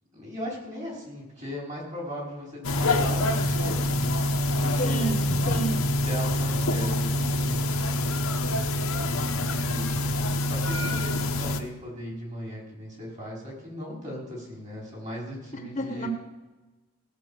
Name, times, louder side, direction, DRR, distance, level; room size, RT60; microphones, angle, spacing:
voice 1, 0.1-5.3 6.0-8.1 9.1-10.1 10.4-16.1, equal, 35° right, -3 dB, 4.9 m, -38 dB
sound 1, 2.6-11.6, left 1 dB, 90° left, 1.1 m, -26 dB
voice 2, 4.8-5.9 15.5-16.1, right 2 dB, 35° left, 4 dB, 1.1 m, -31 dB
17.0 x 6.3 x 7.3 m, 1.2 s
head